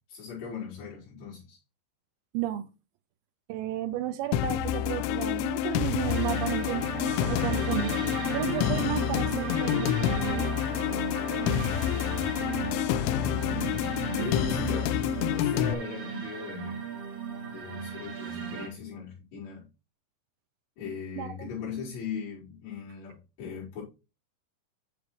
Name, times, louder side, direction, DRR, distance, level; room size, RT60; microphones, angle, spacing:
voice 1, 0.1-1.6 11.9-13.1 13.6-16.8 17.5-19.7 20.8-23.8, left 5 dB, 50° left, 6.3 m, -39 dB
voice 2, 2.3-2.7 3.5-6.9 7.3-7.9 8.3-10.5 14.1-14.3 21.2-21.5, right 13 dB, 85° right, 2.6 m, -33 dB
sound 1, 4.3-15.7, left 11 dB, 85° left, 2.9 m, -28 dB
sound 2, 6.1-18.7, right 5 dB, 45° right, 3.0 m, -36 dB
10.0 x 7.1 x 3.2 m
omnidirectional pair, 5.6 m